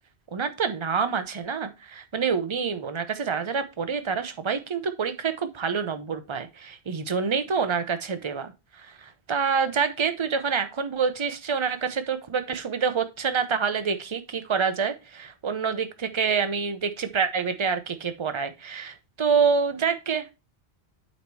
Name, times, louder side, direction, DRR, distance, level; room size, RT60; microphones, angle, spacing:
voice 1, 0.3-20.3, right 6 dB, 30° right, 9 dB, 0.7 m, -27 dB
8.5 x 4.1 x 4.6 m, 0.27 s
omnidirectional pair, 1.1 m